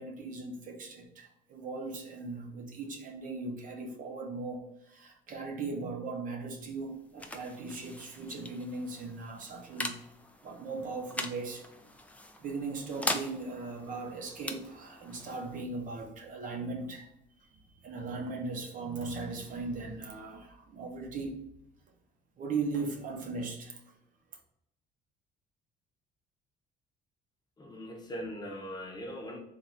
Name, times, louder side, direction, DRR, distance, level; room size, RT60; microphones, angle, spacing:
voice 1, 0.0-10.0 10.4-11.7 12.4-17.1 17.4-21.5 22.4-23.8, right 3 dB, 50° right, 0.7 m, -38 dB
sound 1, 6.4-17.8, left 1 dB, 10° left, 0.4 m, -42 dB
voice 2, 27.6-29.4, equal, 25° left, 0.8 m, -40 dB
3.2 x 2.5 x 4.0 m
cardioid pair, 110°, 17 cm